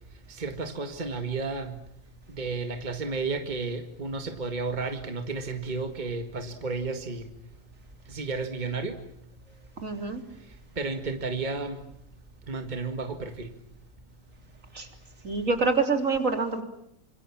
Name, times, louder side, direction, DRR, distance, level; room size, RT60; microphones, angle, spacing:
voice 1, 0.3-1.8 2.3-7.3 8.1-9.0 10.8-11.8 12.5-13.5, right 3 dB, 30° right, 5 dB, 2.1 m, -32 dB
voice 2, 9.8-10.2 14.7-14.9 15.2-16.6, right 4 dB, 60° right, 5 dB, 3.8 m, -26 dB
28.5 x 26.5 x 7.4 m, 0.75 s
omnidirectional pair, 1.5 m